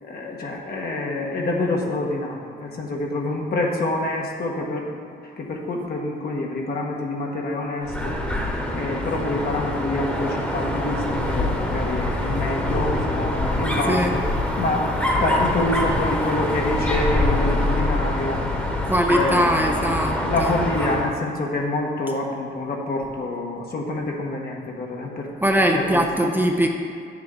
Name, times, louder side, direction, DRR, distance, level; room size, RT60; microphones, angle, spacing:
voice 1, 0.0-8.5 8.7-14.3 14.5-14.9 15.2-18.4 19.1-25.3 25.7-26.3, left 2 dB, 50° left, -1 dB, 1.5 m, -27 dB
Dog, 7.8-21.1, left 1 dB, 5° left, 1.4 m, -24 dB
voice 2, 18.9-20.5 25.4-26.7, equal, 10° right, 1 dB, 0.7 m, -21 dB
10.0 x 7.3 x 3.9 m, 2.4 s
cardioid pair, 90°, 20 cm